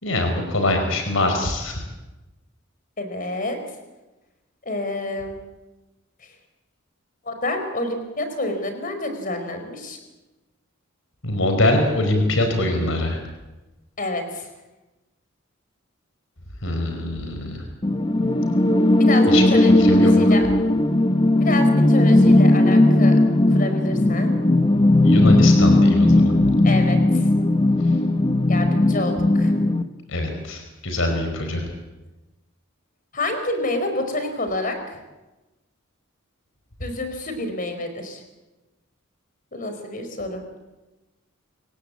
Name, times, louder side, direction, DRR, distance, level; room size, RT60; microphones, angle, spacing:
voice 1, 0.0-1.8 11.2-13.2 16.6-17.6 19.3-20.1 25.0-26.3 30.1-31.6, left 1 dB, 65° left, 4 dB, 4.8 m, -23 dB
voice 2, 3.0-3.6 4.6-5.4 6.2-6.3 7.2-10.0 14.0-14.5 19.1-19.7 20.2-20.5 21.4-23.2 23.5-24.3 26.6-27.3 28.5-29.5 33.1-35.0 36.8-38.2 39.5-40.4, left 2 dB, 40° left, 7 dB, 4.5 m, -28 dB
sound 1, 17.8-29.8, left 1 dB, 25° left, 1.1 m, -17 dB
27.5 x 17.0 x 8.5 m, 1.1 s
head